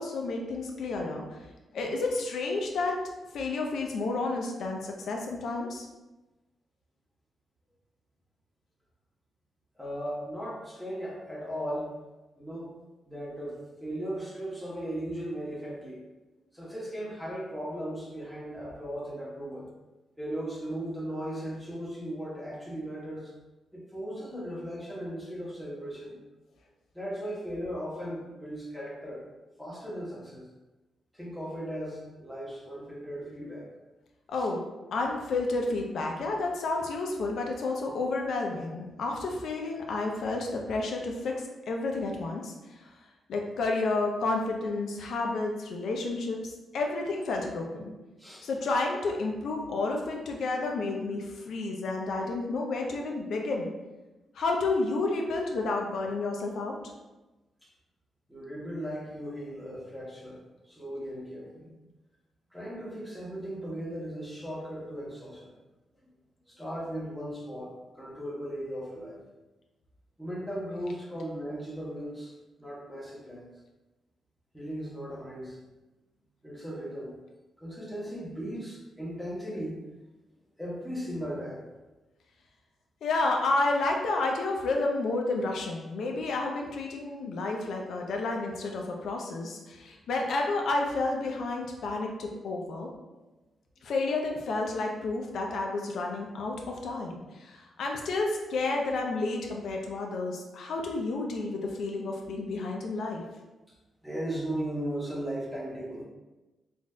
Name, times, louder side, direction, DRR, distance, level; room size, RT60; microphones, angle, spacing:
voice 1, 0.0-1.4 1.7-3.0 3.3-5.9 34.3-34.6 34.9-42.9 43.3-47.9 48.4-53.7 54.3-56.8 83.0-92.9 93.8-103.2, left 3 dB, 75° left, 1 dB, 0.5 m, -31 dB
voice 2, 9.8-11.9 12.4-12.7 13.1-16.0 16.5-19.7 20.2-23.3 23.7-26.2 26.9-29.2 29.6-30.5 31.1-33.7 34.3-34.5 48.2-48.5 57.6-57.7 58.3-61.7 62.5-65.5 66.5-69.2 70.2-72.3 72.6-73.5 74.5-75.6 76.4-77.1 77.6-79.9 80.6-81.6 104.0-106.1, equal, ahead, -6 dB, 1.0 m, -37 dB
3.9 x 2.5 x 2.2 m, 1.1 s
cardioid pair, 100°, 0 cm